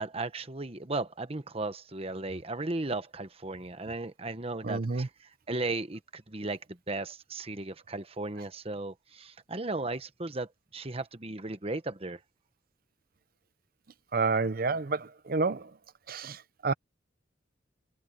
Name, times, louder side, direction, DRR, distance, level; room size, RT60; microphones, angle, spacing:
voice 1, 0.0-12.2, right 2 dB, 30° right, 1.2 m, -36 dB
voice 2, 4.6-5.1 14.1-15.7 16.1-16.7, right 4 dB, 50° right, 0.7 m, -29 dB
head